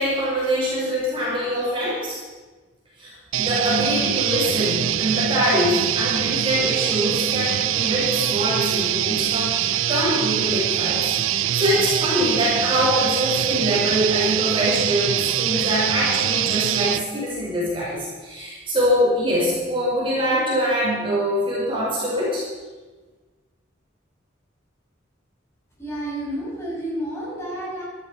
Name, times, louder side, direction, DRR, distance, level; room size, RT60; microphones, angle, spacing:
voice 1, 0.0-2.2 3.0-22.5, equal, 25° right, -6 dB, 5.2 m, -24 dB
sound 1, 3.3-17.0, right 11 dB, 85° right, 0.5 m, -23 dB
voice 2, 25.8-27.8, right 1 dB, 15° left, -6 dB, 6.2 m, -30 dB
13.5 x 13.0 x 5.5 m, 1.3 s
head